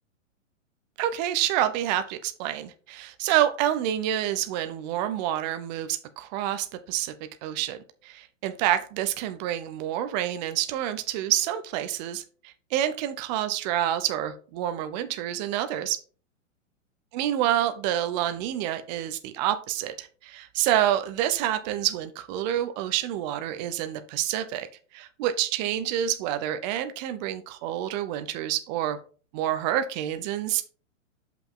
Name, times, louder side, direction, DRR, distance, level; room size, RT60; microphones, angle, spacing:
voice 1, 1.0-16.0 17.1-24.7 24.9-29.0 29.3-30.6, right 12 dB, 35° right, 0.8 m, -28 dB
7.0 x 5.8 x 3.8 m
hypercardioid pair, 130°, 39 cm